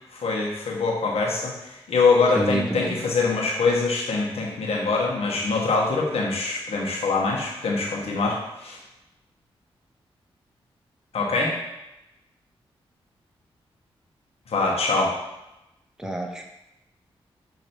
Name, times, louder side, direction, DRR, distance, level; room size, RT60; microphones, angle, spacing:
voice 1, 0.1-8.8 11.1-11.6 14.5-15.1, left 3 dB, 75° left, -2 dB, 1.5 m, -24 dB
voice 2, 2.3-2.9 16.0-16.4, right 1 dB, 5° right, 2 dB, 0.8 m, -27 dB
6.6 x 3.2 x 4.5 m, 0.92 s
cardioid pair, 50°, 10 cm